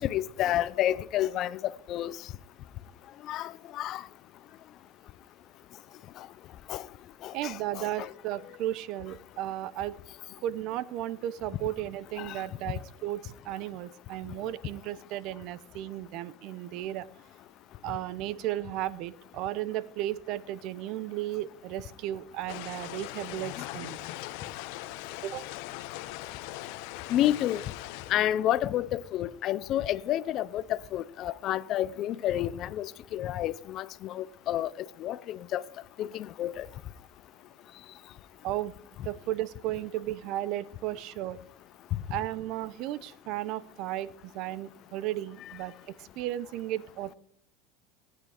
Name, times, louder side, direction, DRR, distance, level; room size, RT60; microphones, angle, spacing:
voice 1, 0.0-2.1 3.3-4.0 6.7-6.8 7.2-8.1 12.2-12.4 23.6-23.7 27.1-27.6 28.1-34.7 35.0-35.6 36.0-36.7, left 12 dB, 45° left, 0.6 m, -30 dB
voice 2, 7.3-10.0 10.4-17.1 17.8-24.0 25.2-25.5 38.4-38.7 39.0-41.4 42.1-47.1, right 13 dB, 55° right, 0.8 m, -34 dB
sound 1, 22.5-28.1, left 17 dB, 70° left, 0.8 m, -40 dB
16.5 x 9.6 x 5.0 m
supercardioid pair, 120°, 0 cm